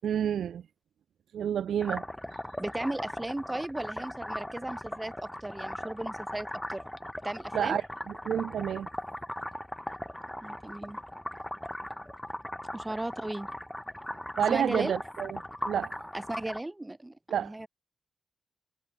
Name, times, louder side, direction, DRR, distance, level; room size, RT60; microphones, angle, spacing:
voice 1, 0.0-0.6 1.3-2.0 7.5-7.8 8.3-8.9 14.4-15.4 15.7-16.0 17.3-17.5, right 9 dB, 75° right, 0.3 m, -29 dB
sound 1, 1.8-16.6, left 1 dB, 5° left, 3.0 m, -39 dB
voice 2, 2.6-6.8 7.2-7.8 10.4-11.0 12.7-13.5 14.5-14.9 16.1-17.7, right 1 dB, 15° right, 2.3 m, -36 dB
cardioid pair, 65°, 0 cm